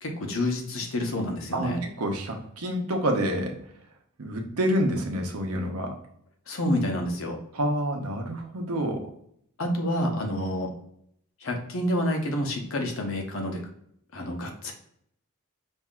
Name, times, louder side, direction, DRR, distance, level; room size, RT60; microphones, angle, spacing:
voice 1, 0.0-1.8 6.5-7.4 9.6-10.7 11.4-13.6 14.1-14.7, left 1 dB, 65° left, 2 dB, 0.9 m, -28 dB
voice 2, 1.5-3.6 4.2-6.0 7.5-9.1, equal, 80° right, 3 dB, 0.8 m, -28 dB
5.5 x 2.6 x 2.4 m, 0.70 s
head